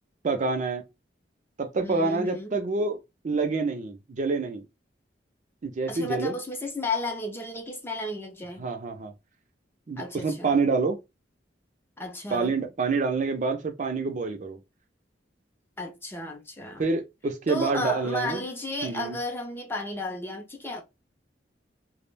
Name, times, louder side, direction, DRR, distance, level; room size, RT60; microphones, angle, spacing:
voice 1, 0.2-0.8 1.6-3.0 3.2-4.6 5.6-6.4 8.6-9.1 9.9-11.0 12.3-14.6 16.8-18.4 18.8-19.2, right 4 dB, 45° right, 0.4 m, -27 dB
voice 2, 1.8-2.6 5.9-8.6 10.0-10.6 12.0-12.5 15.8-16.8 17.5-20.8, left 2 dB, 15° left, 0.4 m, -33 dB
2.3 x 2.0 x 3.2 m
head